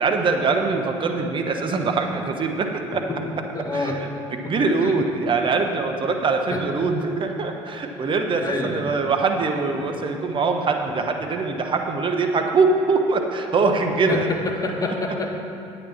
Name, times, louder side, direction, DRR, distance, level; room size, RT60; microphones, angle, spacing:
voice 1, 0.0-3.0 3.7-4.1 4.5-14.3, right 4 dB, 35° right, 4 dB, 1.0 m, -23 dB
voice 2, 3.5-4.0 4.4-5.0 6.5-6.6 8.4-8.8 10.0-10.1 14.1-15.3, left 3 dB, 25° left, 1 dB, 1.6 m, -28 dB
10.0 x 8.8 x 4.2 m, 2.7 s
hypercardioid pair, 65°, 14 cm